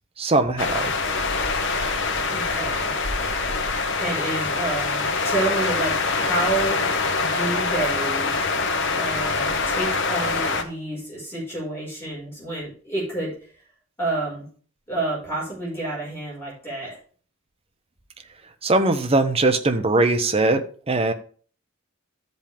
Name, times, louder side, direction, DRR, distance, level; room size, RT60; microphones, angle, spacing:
voice 1, 0.2-0.9 18.6-21.1, right 2 dB, 30° right, 6 dB, 0.8 m, -21 dB
sound 1, 0.6-10.6, left 4 dB, 65° left, 1.2 m, -24 dB
voice 2, 2.3-2.9 4.0-6.8 7.2-8.3 8.9-13.3 14.0-14.5 14.9-17.0, right 2 dB, 10° left, -6 dB, 4.9 m, -29 dB
13.5 x 5.4 x 3.5 m, 0.42 s
head